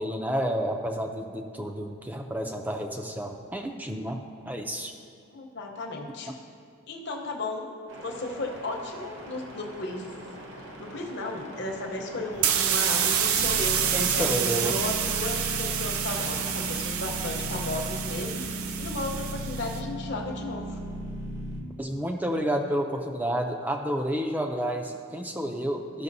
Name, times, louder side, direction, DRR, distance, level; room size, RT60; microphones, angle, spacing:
voice 1, 0.0-4.2 4.5-4.9 6.3-6.4 13.9-14.8 21.8-26.0, right 1 dB, 10° right, 3 dB, 0.4 m, -30 dB
voice 2, 5.3-6.3 6.9-10.1 10.8-18.4 18.8-20.8, left 2 dB, 50° left, 1 dB, 0.8 m, -34 dB
sound 1, 7.9-21.6, equal, 65° right, 1.2 m, -38 dB
sound 2, 12.3-19.8, right 8 dB, 85° right, 0.5 m, -28 dB
13.5 x 6.0 x 2.7 m, 2.3 s
head